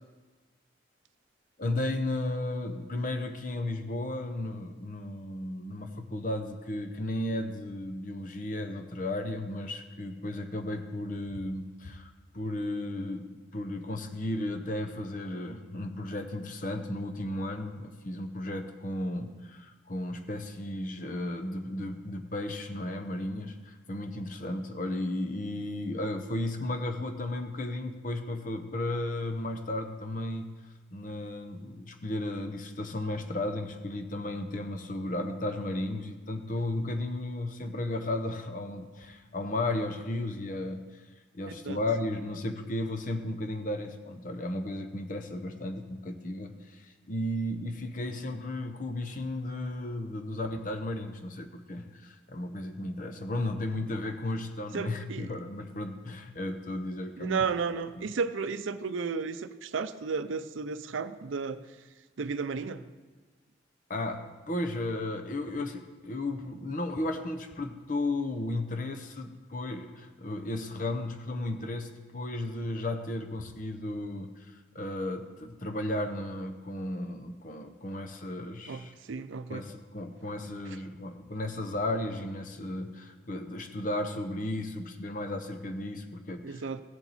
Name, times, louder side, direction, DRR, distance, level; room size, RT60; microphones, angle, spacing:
voice 1, 1.6-30.6 30.9-41.0 41.3-57.4 58.0-58.1 63.9-78.9 79.5-86.7, left 1 dB, 40° left, 5 dB, 0.8 m, -34 dB
voice 2, 41.4-41.8 54.7-55.3 57.2-61.6 62.2-62.8 78.7-79.6 86.4-86.8, right 5 dB, 80° right, 12 dB, 0.5 m, -33 dB
16.0 x 7.2 x 4.1 m, 1.3 s
head